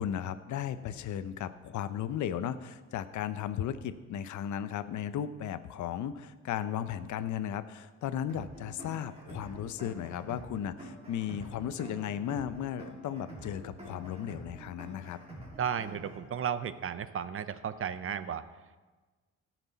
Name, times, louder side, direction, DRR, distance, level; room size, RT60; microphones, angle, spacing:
voice 1, 0.0-15.2, left 9 dB, 75° left, 13 dB, 0.7 m, -35 dB
sound 1, 8.3-16.3, right 1 dB, 20° right, 3.0 m, -47 dB
voice 2, 15.6-18.4, right 8 dB, 45° right, 13 dB, 0.7 m, -34 dB
17.5 x 6.1 x 4.1 m, 1.3 s
cardioid pair, 90°, 30 cm